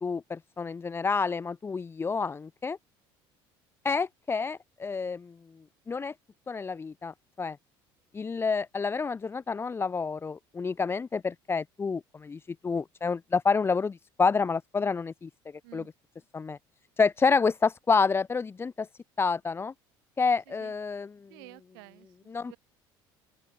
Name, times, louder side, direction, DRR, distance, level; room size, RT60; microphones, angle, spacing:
voice 1, 0.0-2.8 3.8-5.3 5.9-6.1 6.5-7.6 8.1-15.3 15.7-15.8 16.3-16.6 17.0-18.9 19.2-19.7 20.2-21.3 22.3-22.5, left 5 dB, 20° left, 0.4 m, -28 dB
voice 2, 20.5-20.8 21.3-22.6, right 29 dB, 85° right, 4.1 m, -52 dB
open air
supercardioid pair, 85°, 12 cm